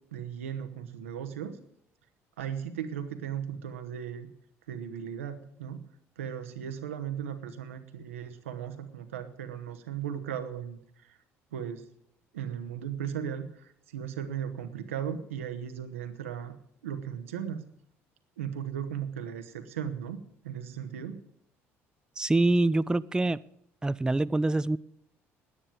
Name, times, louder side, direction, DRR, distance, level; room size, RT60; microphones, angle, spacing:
voice 1, 0.1-1.6 2.4-4.3 4.7-5.9 6.2-11.2 11.5-11.9 12.3-16.5 16.8-17.7 18.4-21.2, right 8 dB, 90° right, 8 dB, 1.1 m, -37 dB
voice 2, 22.2-23.4 23.8-24.8, right 2 dB, 10° right, 16 dB, 0.4 m, -25 dB
10.0 x 9.7 x 9.0 m, 0.71 s
hypercardioid pair, 60°, 7 cm